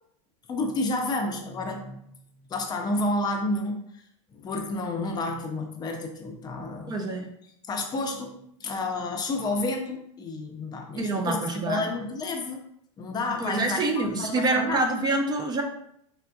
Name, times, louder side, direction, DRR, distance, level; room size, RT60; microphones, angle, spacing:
voice 1, 0.5-2.2 2.5-3.8 4.3-7.2 7.7-12.6 13.0-14.9, left 2 dB, 25° left, 3 dB, 0.5 m, -30 dB
voice 2, 6.9-7.3 11.0-11.9 13.3-15.6, right 2 dB, 25° right, 3 dB, 0.5 m, -26 dB
3.4 x 2.5 x 2.3 m, 0.72 s
hypercardioid pair, 105°, 17 cm